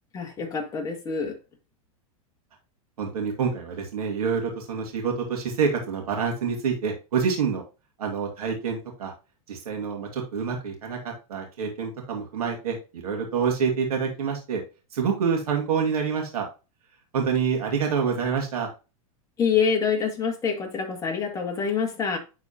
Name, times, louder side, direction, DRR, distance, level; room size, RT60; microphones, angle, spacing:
voice 1, 0.1-1.4 19.4-22.2, left 6 dB, 20° left, 1.9 m, -26 dB
voice 2, 3.0-7.6 8.0-9.1 9.5-14.6 14.9-16.4 17.1-18.7, right 6 dB, 90° right, 2.4 m, -27 dB
10.5 x 4.1 x 2.8 m
supercardioid pair, 145°, 19 cm